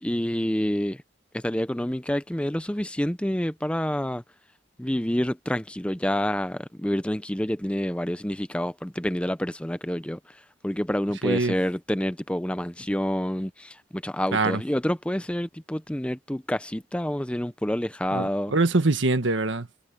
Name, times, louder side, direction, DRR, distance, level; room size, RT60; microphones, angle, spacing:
voice 1, 0.0-1.0 1.3-4.2 4.8-10.2 10.6-18.5, equal, 5° left, 0.6 m, -28 dB
voice 2, 11.2-11.6 14.3-14.6 18.1-19.7, right 2 dB, 75° right, 1.5 m, -23 dB
head